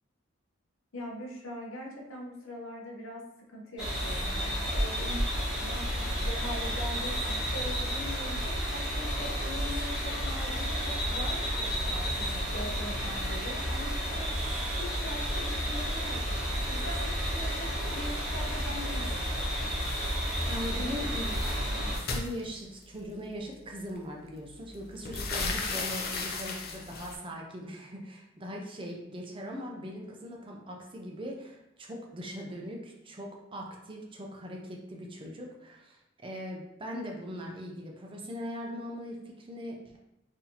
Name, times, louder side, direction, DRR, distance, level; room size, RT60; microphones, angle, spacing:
voice 1, 0.9-3.2 3.5-5.2 5.5-14.3 14.8-19.5, left 1 dB, 75° left, -1 dB, 0.8 m, -42 dB
sound 1, 3.8-22.0, equal, 5° right, 1.0 m, -31 dB
sound 2, 19.7-20.8 21.0-23.0 24.0-24.1 24.4-27.2, left 3 dB, 50° left, 0.5 m, -36 dB
voice 2, 20.5-40.0, equal, 25° right, 0 dB, 0.5 m, -40 dB
3.9 x 2.7 x 2.8 m, 0.90 s
head